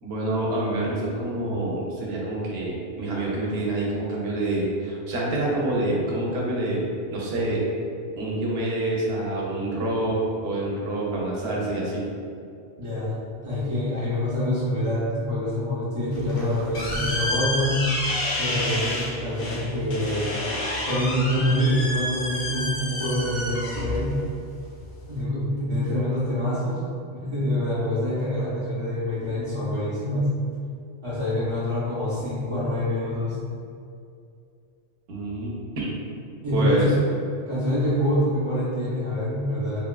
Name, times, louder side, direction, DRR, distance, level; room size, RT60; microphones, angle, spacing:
voice 1, 0.0-6.8 7.1-7.6 8.2-12.0 35.1-35.9 36.5-36.9, right 2 dB, 70° right, -4 dB, 0.9 m, -27 dB
voice 2, 12.8-17.9 18.4-20.4 20.8-24.2 25.1-26.8 27.1-30.4 31.0-33.4 36.4-37.0 37.5-39.8, left 1 dB, 35° right, -11 dB, 0.5 m, -26 dB
sound 1, 16.1-25.2, left 1 dB, 65° left, 0.8 m, -30 dB
3.6 x 2.2 x 2.3 m, 2.4 s
omnidirectional pair, 1.1 m